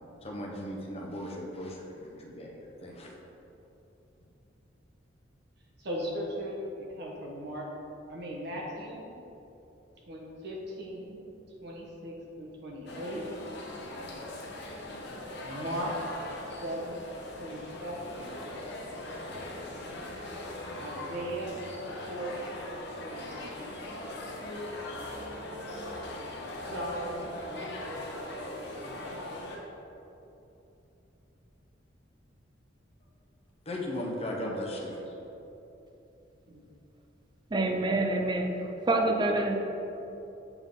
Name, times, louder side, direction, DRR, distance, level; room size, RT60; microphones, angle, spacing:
voice 1, 0.2-3.1 33.7-35.1, left 1 dB, 30° left, -2 dB, 0.8 m, -37 dB
voice 2, 5.8-7.7 8.1-9.0 10.1-11.2 11.6-13.3 15.4-15.9 16.6-17.0 17.4-18.2 20.7-21.6 22.1-22.6 23.0-23.8 26.7-29.3 36.5-36.6, equal, 65° right, -2 dB, 1.1 m, -38 dB
sound 1, 12.9-29.6, left 1 dB, 60° left, 0.8 m, -40 dB
voice 3, 37.5-38.5 38.9-39.6, right 2 dB, 25° right, 4 dB, 0.4 m, -26 dB
7.2 x 3.8 x 3.6 m, 2.9 s
head